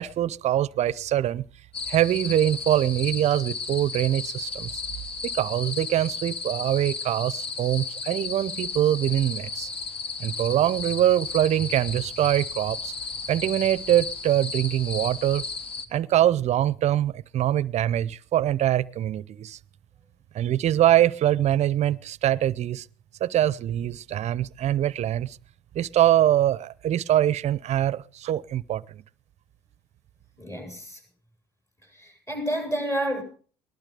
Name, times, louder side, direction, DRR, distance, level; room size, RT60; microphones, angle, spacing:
voice 1, 0.0-1.4 1.9-4.8 5.3-9.7 10.2-12.9 13.3-15.4 15.9-19.6 20.3-22.9 23.2-25.4 25.7-29.0, right 12 dB, 50° right, 0.6 m, -23 dB
sound 1, 1.7-15.9, left 4 dB, 40° left, 1.6 m, -34 dB
voice 2, 30.4-31.0 31.9-33.2, right 1 dB, 20° left, 8.0 m, -30 dB
19.5 x 12.0 x 5.0 m
hypercardioid pair, 70°, 14 cm